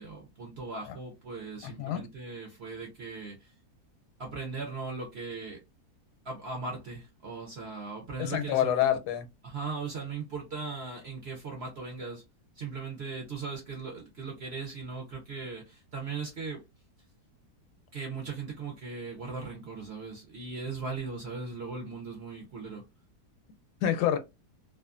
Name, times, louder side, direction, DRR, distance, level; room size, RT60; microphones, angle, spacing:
voice 1, 0.0-3.5 4.2-5.6 6.2-8.8 9.4-12.2 12.5-16.6 17.9-22.8, right 4 dB, 60° right, 0.7 m, -38 dB
voice 2, 1.6-2.0 8.2-9.3 23.8-24.2, left 10 dB, 80° left, 1.1 m, -27 dB
2.6 x 2.4 x 2.3 m
omnidirectional pair, 1.7 m